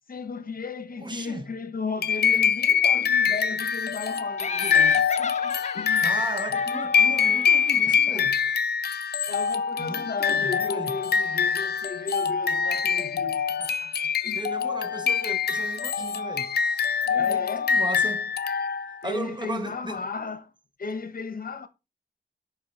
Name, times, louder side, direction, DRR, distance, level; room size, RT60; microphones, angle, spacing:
voice 1, 0.1-6.2 7.8-8.3 9.3-14.5 17.1-17.8 19.0-20.5 20.8-21.7, left 4 dB, 65° left, 1.0 m, -35 dB
voice 2, 1.0-1.5 6.0-8.4 9.8-11.0 14.3-16.6 17.0-18.3 18.9-20.1, right 2 dB, 30° right, 1.0 m, -36 dB
sound 1, 2.0-19.1, left 7 dB, 90° left, 0.6 m, -24 dB
Laughter, 4.4-8.0, left 6 dB, 45° left, 0.5 m, -34 dB
7.5 x 5.4 x 4.4 m
wide cardioid pair, 120°, 16 cm